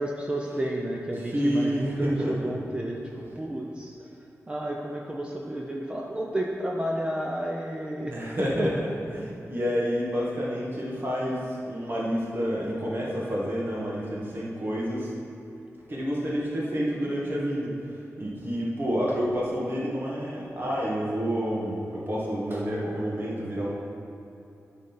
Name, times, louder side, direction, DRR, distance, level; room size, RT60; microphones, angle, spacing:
voice 1, 0.0-3.9 4.5-8.2 8.6-8.7, right 1 dB, 20° right, -2 dB, 0.7 m, -31 dB
voice 2, 1.3-2.5 8.1-15.1 15.9-17.7 18.2-23.7, equal, 40° right, -5 dB, 2.0 m, -29 dB
11.0 x 4.1 x 5.8 m, 2.9 s
wide cardioid pair, 125°, 5 cm